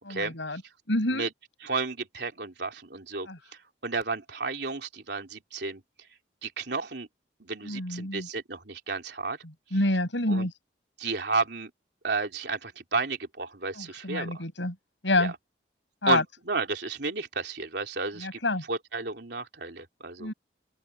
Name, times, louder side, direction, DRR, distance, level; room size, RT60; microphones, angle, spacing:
voice 1, 0.0-0.6 0.9-1.3 3.3-3.4 7.6-8.3 9.4-10.5 13.8-14.8 15.0-15.3 16.0-16.2 18.2-18.6 20.2-20.3, left 2 dB, 80° left, 7.4 m, -28 dB
voice 2, 1.6-3.3 3.8-5.8 6.4-7.1 7.4-9.4 10.3-10.5 11.0-11.7 12.0-14.4 15.2-15.3 16.1-18.4 18.7-20.3, right 4 dB, 65° right, 3.1 m, -32 dB
open air
head